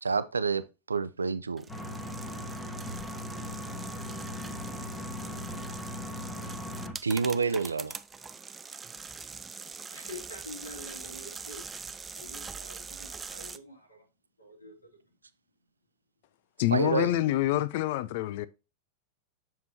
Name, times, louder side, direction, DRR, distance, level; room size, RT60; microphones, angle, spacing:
voice 1, 0.0-1.6 7.0-8.0 16.7-17.1, right 4 dB, 75° right, 0.5 m, -28 dB
sound 1, 1.6-13.6, right 5 dB, 15° right, 0.4 m, -43 dB
sound 2, 1.7-6.9, left 1 dB, 15° left, 1.6 m, -38 dB
voice 2, 9.9-11.6 12.2-14.1 14.4-14.9, left 1 dB, 85° left, 2.8 m, -46 dB
voice 3, 16.6-18.5, left 14 dB, 50° left, 0.4 m, -27 dB
7.3 x 5.8 x 2.8 m
figure-of-eight pair, 90°, 0 cm